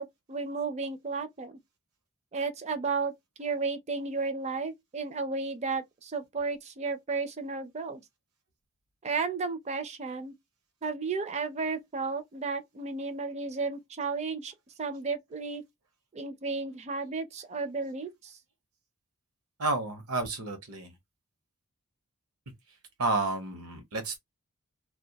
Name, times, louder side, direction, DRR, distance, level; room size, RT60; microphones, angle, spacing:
voice 1, 0.0-1.6 2.3-3.1 3.4-8.0 9.0-10.3 10.8-15.6 16.1-18.4, right 4 dB, 30° right, 0.4 m, -33 dB
voice 2, 19.6-21.0 23.0-24.2, right 3 dB, 85° right, 0.9 m, -31 dB
2.2 x 2.2 x 2.8 m
head